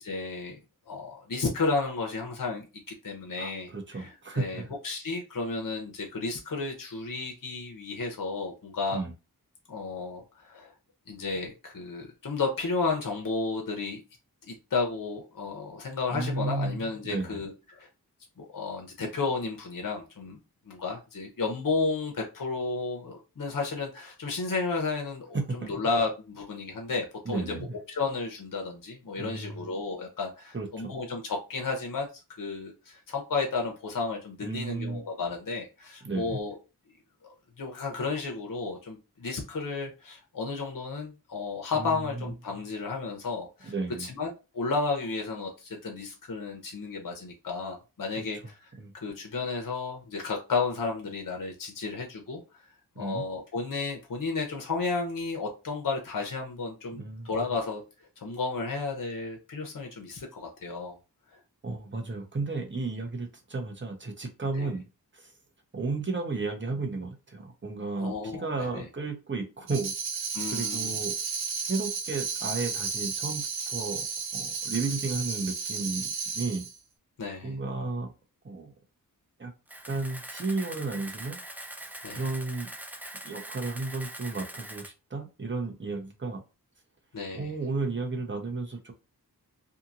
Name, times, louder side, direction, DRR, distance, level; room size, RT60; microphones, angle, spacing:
voice 1, 0.0-0.6 0.9-9.0 9.7-10.7 11.1-14.0 14.5-17.9 18.4-20.4 20.7-32.1 32.4-36.6 37.2-43.7 44.0-48.4 48.9-52.7 53.0-57.8 58.2-61.0 61.3-61.4 64.5-64.7 68.0-68.8 70.3-71.0 77.2-77.5 82.0-82.2 87.1-87.5, left 4 dB, 60° left, 0.8 m, -33 dB
voice 2, 3.4-4.7 8.9-9.1 16.1-17.4 25.3-25.7 27.2-27.7 29.2-29.7 30.5-30.9 34.4-35.1 36.0-36.4 41.8-42.2 43.6-44.1 48.2-48.3 48.8-48.9 53.0-53.2 57.0-57.4 61.6-64.9 65.1-65.3 65.7-69.9 70.5-71.2 71.6-74.1 74.3-76.7 77.4-78.1 78.4-78.7 79.4-79.5 79.8-81.4 81.8-82.7 83.2-86.4 87.3-88.9, right 3 dB, 30° right, 0.8 m, -33 dB
Tambourine, 69.7-76.8, right 5 dB, 85° right, 0.6 m, -33 dB
Camera, 79.7-84.9, right 1 dB, 5° right, 0.4 m, -42 dB
2.8 x 2.5 x 2.5 m
wide cardioid pair, 50°, 37 cm